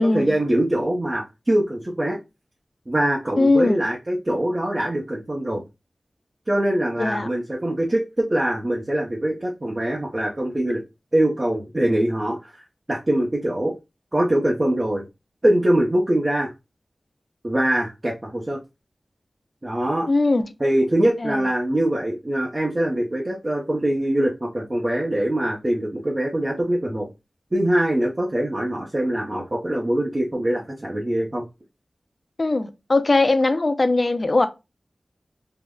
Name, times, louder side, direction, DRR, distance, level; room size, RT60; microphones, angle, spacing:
voice 1, 0.0-2.2 2.9-5.6 6.5-10.8 11.1-13.7 14.1-15.1 15.4-16.5 17.4-18.6 19.6-20.1 20.6-27.1 27.5-31.4, right 1 dB, 35° right, 0.6 m, -23 dB
voice 2, 3.4-3.8 7.0-7.3 20.1-20.5 21.2-21.4 32.4-34.5, left 2 dB, 50° left, 0.4 m, -20 dB
3.5 x 2.1 x 2.2 m
wide cardioid pair, 60°, 0 cm